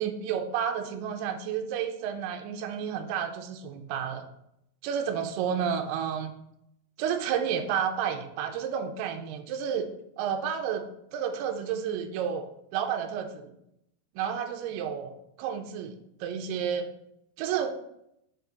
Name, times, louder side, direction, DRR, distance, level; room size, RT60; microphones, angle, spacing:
voice 1, 0.0-4.3 4.8-6.3 7.0-9.9 10.2-10.9 11.1-13.5 14.2-15.1 15.4-16.9 17.4-17.8, right 8 dB, 85° right, 5 dB, 2.4 m, -31 dB
6.5 x 4.8 x 3.9 m, 0.78 s
omnidirectional pair, 5.0 m